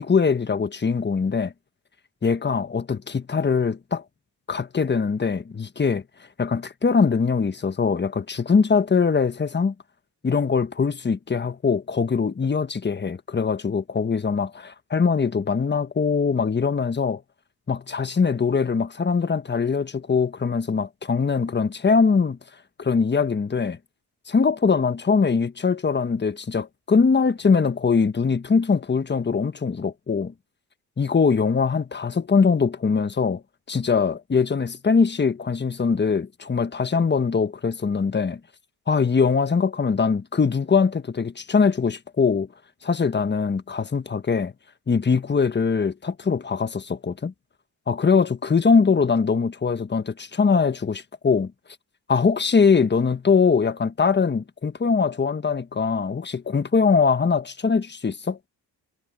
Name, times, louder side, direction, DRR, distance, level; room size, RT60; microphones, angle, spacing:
voice 1, 0.0-1.5 2.2-4.0 4.5-6.0 6.4-9.7 10.2-17.2 17.7-22.4 22.8-23.8 24.3-30.3 31.0-33.4 33.7-38.4 38.9-42.5 42.8-44.5 44.9-47.3 47.9-51.5 52.1-58.4, left 5 dB, 25° left, 1.3 m, -22 dB
cardioid pair, 85°, 40 cm